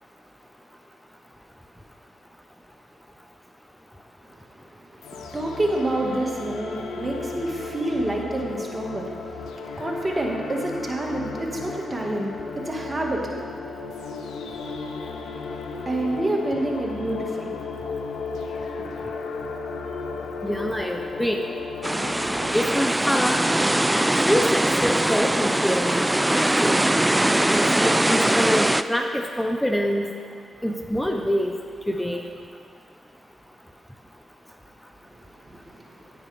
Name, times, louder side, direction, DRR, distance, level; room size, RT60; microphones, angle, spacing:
voice 1, 4.8-14.1 15.9-17.6 18.8-19.5 35.0-35.1 35.4-36.1, right 1 dB, 30° right, -1 dB, 1.8 m, -29 dB
sound 1, 5.0-22.8, left 4 dB, 85° left, 0.6 m, -34 dB
voice 2, 20.4-21.4 22.5-23.4 24.2-26.1 26.3-26.9 27.5-30.1 30.6-31.5 31.9-32.2, equal, 5° left, 3 dB, 0.8 m, -25 dB
sound 2, 21.8-28.8, right 1 dB, 15° right, 0.3 m, -21 dB
9.7 x 9.6 x 3.5 m, 2.1 s
supercardioid pair, 45°, 0 cm